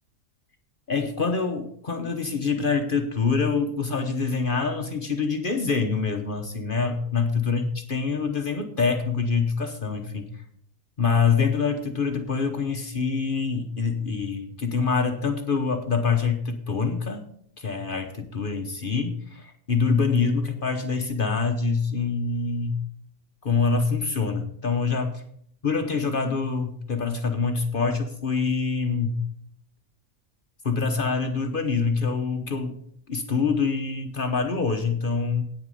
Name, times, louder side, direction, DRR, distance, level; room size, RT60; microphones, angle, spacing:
voice 1, 0.9-10.3 11.0-17.2 17.6-22.7 23.4-25.2 25.6-29.2 30.6-32.8 33.1-35.4, left 5 dB, 45° left, 5 dB, 1.1 m, -25 dB
9.3 x 9.1 x 5.5 m, 0.66 s
omnidirectional pair, 1.3 m